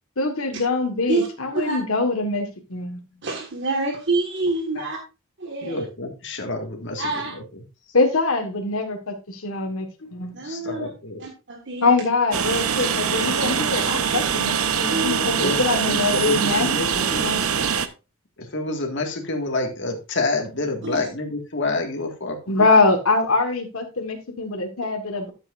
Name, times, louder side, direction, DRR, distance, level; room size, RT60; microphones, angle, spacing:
voice 1, 0.2-3.0 4.8-4.9 7.9-10.3 11.8-16.7 16.9-17.7 22.5-25.3, left 3 dB, 75° left, 3 dB, 1.5 m, -23 dB
voice 2, 3.2-5.0 5.4-5.8 7.0-7.3 10.3-10.9 11.2-12.0 14.6-15.3 20.8-21.0 22.6-22.7, right 3 dB, 55° right, 1 dB, 1.6 m, -27 dB
voice 3, 5.6-7.1 10.3-11.3 15.4-15.6 15.9-17.4 18.4-22.6, left 2 dB, 60° left, 3 dB, 1.9 m, -28 dB
Train, 12.3-17.9, right 7 dB, 80° right, 0.8 m, -23 dB
12.5 x 7.5 x 2.5 m, 0.29 s
head